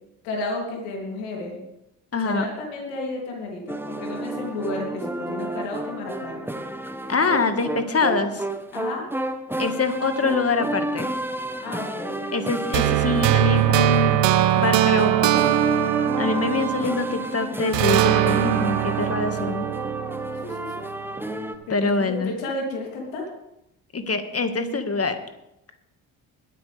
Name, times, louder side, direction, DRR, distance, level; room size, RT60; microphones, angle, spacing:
voice 1, 0.2-1.6 2.2-6.5 8.7-9.0 11.6-12.3 20.4-20.7 21.7-23.3, left 2 dB, 80° left, -1 dB, 3.2 m, -32 dB
voice 2, 2.1-2.5 7.1-8.4 9.6-11.1 12.3-15.3 16.2-19.7 21.7-22.3 23.9-25.2, left 4 dB, 30° left, 8 dB, 1.9 m, -24 dB
sound 1, 3.7-21.5, right 1 dB, 5° right, 1.1 m, -31 dB
sound 2, 12.7-17.3 17.7-20.8, right 14 dB, 65° right, 0.9 m, -21 dB
21.0 x 9.2 x 3.5 m, 0.85 s
hypercardioid pair, 50°, 46 cm